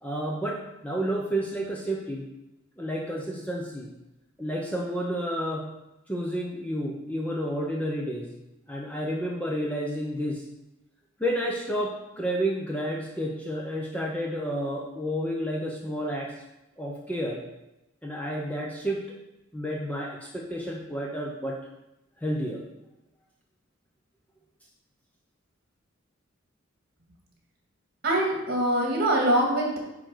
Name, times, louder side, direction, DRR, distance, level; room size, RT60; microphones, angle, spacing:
voice 1, 0.0-0.6 0.8-2.3 2.8-3.9 4.4-5.7 6.1-8.3 8.7-10.4 11.2-16.3 16.8-17.4 18.0-19.0 19.5-21.6 22.2-22.6, equal, 5° left, -2 dB, 0.8 m, -30 dB
voice 2, 28.0-29.8, right 1 dB, 45° right, -1 dB, 2.3 m, -23 dB
9.6 x 4.0 x 6.2 m, 0.93 s
head